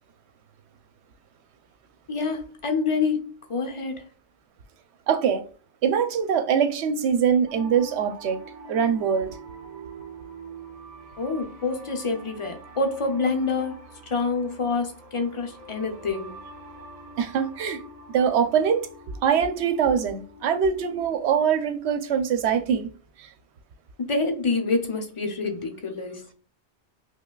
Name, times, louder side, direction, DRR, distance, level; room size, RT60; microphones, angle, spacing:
voice 1, 2.1-4.1 11.2-16.4 24.1-26.3, left 4 dB, 40° left, 0.5 m, -27 dB
voice 2, 5.1-5.4 5.8-8.4 8.7-9.3 17.2-17.8 18.1-22.9 23.2-23.3, right 7 dB, 75° right, 0.8 m, -23 dB
sound 1, 7.5-21.0, right 2 dB, 40° right, 0.6 m, -45 dB
5.3 x 2.2 x 2.3 m
omnidirectional pair, 1.2 m